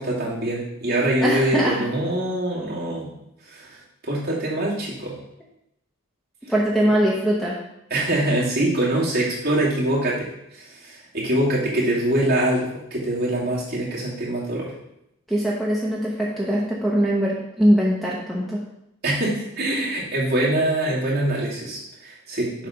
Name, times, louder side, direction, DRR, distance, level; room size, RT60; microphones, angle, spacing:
voice 1, 0.0-3.1 3.5-5.2 7.9-14.7 19.0-22.7, right 1 dB, 45° right, -6 dB, 2.3 m, -24 dB
voice 2, 1.2-1.8 6.5-7.6 15.3-18.6, equal, ahead, -5 dB, 0.8 m, -21 dB
7.5 x 3.3 x 5.8 m, 0.82 s
head